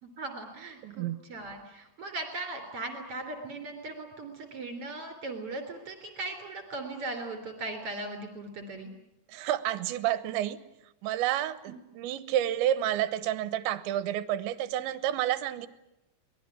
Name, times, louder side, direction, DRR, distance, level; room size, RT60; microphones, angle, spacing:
voice 1, 0.0-8.9 11.7-11.8, right 2 dB, 35° right, 6 dB, 3.8 m, -38 dB
voice 2, 0.8-1.2 9.3-10.6 11.0-15.7, right 12 dB, 75° right, 15 dB, 3.2 m, -30 dB
23.5 x 20.0 x 9.8 m, 0.89 s
omnidirectional pair, 5.5 m